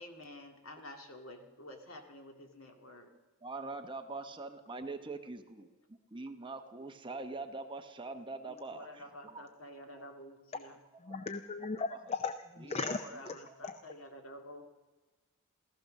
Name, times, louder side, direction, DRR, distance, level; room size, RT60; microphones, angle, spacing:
voice 1, 0.0-3.1 8.7-10.8 12.7-14.6, left 1 dB, 70° left, 4 dB, 2.1 m, -50 dB
voice 2, 3.4-9.4 9.7-10.0 11.1-11.3 12.6-13.0 13.5-13.6, right 3 dB, 25° right, 6 dB, 1.0 m, -44 dB
voice 3, 11.0-13.8, left 4 dB, 30° left, 10 dB, 0.5 m, -38 dB
15.0 x 14.5 x 6.4 m, 1.2 s
head